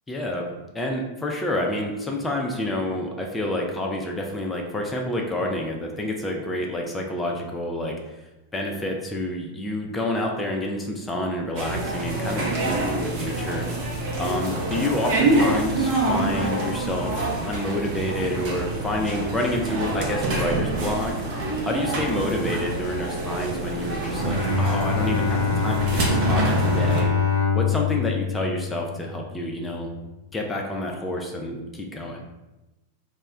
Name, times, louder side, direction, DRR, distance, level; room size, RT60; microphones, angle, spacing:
voice 1, 0.1-0.5 0.7-8.0 8.5-13.7 14.2-21.1 21.7-27.1 27.5-29.9 30.3-32.2, left 1 dB, 10° left, 1 dB, 0.3 m, -28 dB
sound 1, 11.6-27.0, right 2 dB, 45° right, 0.6 m, -26 dB
Bowed string instrument, 24.1-29.4, left 5 dB, 85° right, 0.6 m, -24 dB
2.1 x 2.1 x 3.5 m, 1.0 s
figure-of-eight pair, 90°, 0 cm